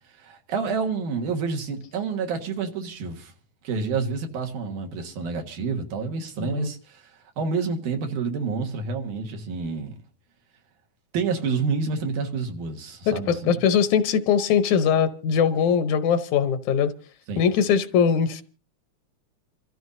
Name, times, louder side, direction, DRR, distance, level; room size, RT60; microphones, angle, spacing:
voice 1, 0.2-3.3 3.6-7.1 7.4-10.0 11.1-13.6 17.3-17.5, right 5 dB, 85° right, 3.2 m, -28 dB
voice 2, 13.1-16.9 17.4-18.4, left 7 dB, 75° left, 2.1 m, -21 dB
28.0 x 14.0 x 2.7 m
omnidirectional pair, 3.5 m